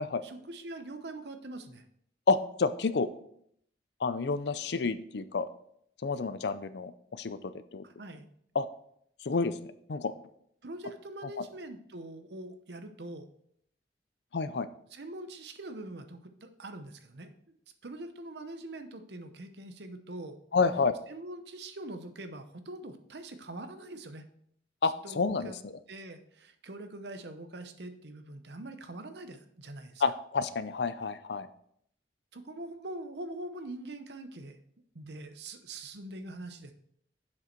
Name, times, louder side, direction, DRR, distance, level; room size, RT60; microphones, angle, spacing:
voice 1, 0.0-1.8 7.8-8.3 10.6-13.3 14.9-17.3 17.8-20.4 21.1-24.2 25.0-25.6 25.9-30.0 32.3-34.6 34.9-36.7, right 2 dB, 70° right, 8 dB, 0.9 m, -43 dB
voice 2, 2.3-3.1 4.0-5.5 6.0-7.8 8.5-8.7 9.2-10.1 14.3-14.7 20.5-20.9 24.8-25.7 30.0-31.5, left 4 dB, 70° left, 13 dB, 0.5 m, -29 dB
7.5 x 6.5 x 4.5 m, 0.69 s
head